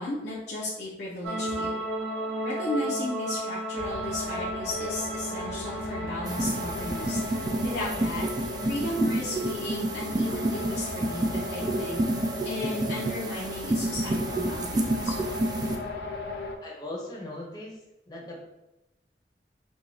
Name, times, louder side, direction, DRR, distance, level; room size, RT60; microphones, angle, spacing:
voice 1, 0.0-1.8 2.4-7.2 7.6-8.3 8.7-12.0 12.4-15.3, left 1 dB, 80° left, -8 dB, 0.8 m, -34 dB
sound 1, 1.2-14.5, right 1 dB, 70° right, 0.8 m, -36 dB
sound 2, 3.8-16.6, left 2 dB, 65° left, 0.4 m, -38 dB
sound 3, 6.3-15.8, right 1 dB, 25° right, 0.3 m, -29 dB
voice 2, 16.6-17.8 18.1-18.4, left 1 dB, 25° left, -4 dB, 0.7 m, -39 dB
4.6 x 2.4 x 2.7 m, 0.94 s
head